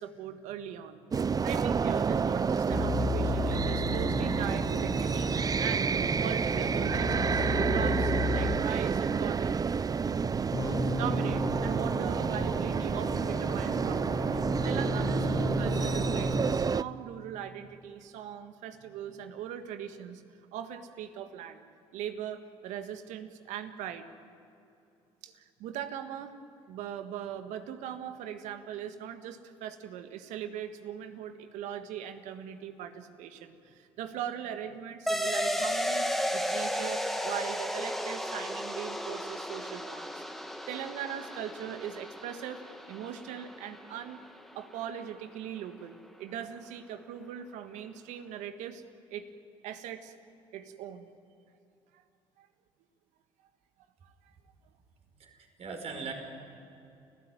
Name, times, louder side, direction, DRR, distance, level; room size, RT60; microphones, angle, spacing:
voice 1, 0.0-5.9 6.2-7.4 7.7-9.6 10.9-20.2 20.5-21.6 21.9-24.1 25.2-26.4 26.7-40.2 40.7-44.2 44.6-48.8 49.1-49.3 49.6-50.1 50.5-51.1 51.9-52.0 52.4-52.5 54.0-54.3, right 9 dB, 75° right, 8 dB, 1.8 m, -40 dB
sound 1, 1.1-16.8, right 6 dB, 30° right, 0.6 m, -29 dB
sound 2, 2.7-8.6 10.5-16.6, left 3 dB, 30° left, 1.6 m, -34 dB
sound 3, 35.1-44.1, equal, ahead, 2.1 m, -34 dB
voice 2, 55.2-56.1, right 5 dB, 55° right, 4 dB, 5.1 m, -40 dB
30.0 x 15.5 x 9.3 m, 2.7 s
supercardioid pair, 70°, 12 cm